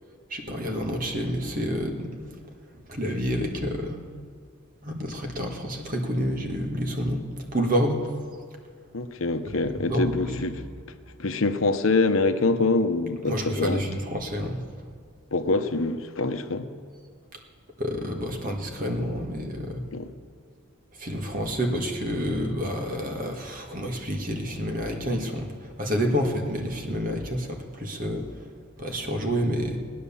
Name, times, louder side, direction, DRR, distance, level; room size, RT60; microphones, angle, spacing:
voice 1, 0.3-2.2 2.9-4.0 4.8-7.2 7.5-8.0 9.9-10.4 13.3-14.6 17.8-19.8 21.0-25.5 25.8-28.2 28.8-29.8, equal, 40° right, 2 dB, 1.7 m, -28 dB
voice 2, 8.9-10.6 11.2-13.8 15.3-16.7 19.9-20.1, left 3 dB, 75° left, 8 dB, 0.9 m, -25 dB
19.0 x 9.5 x 7.1 m, 2.1 s
head